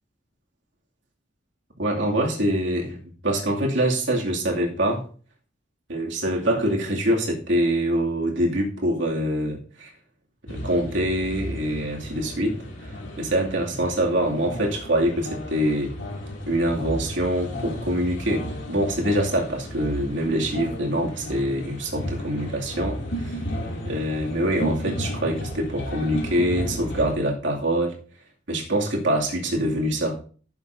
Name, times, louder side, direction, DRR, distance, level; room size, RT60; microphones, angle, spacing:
voice 1, 1.8-5.1 5.9-9.9 10.5-15.9 16.5-23.4 23.8-28.0 28.5-30.2, right 1 dB, 75° right, -1 dB, 2.4 m, -25 dB
sound 1, 10.5-27.1, equal, 85° left, 2.6 m, -33 dB
15.0 x 7.3 x 2.7 m, 0.41 s
head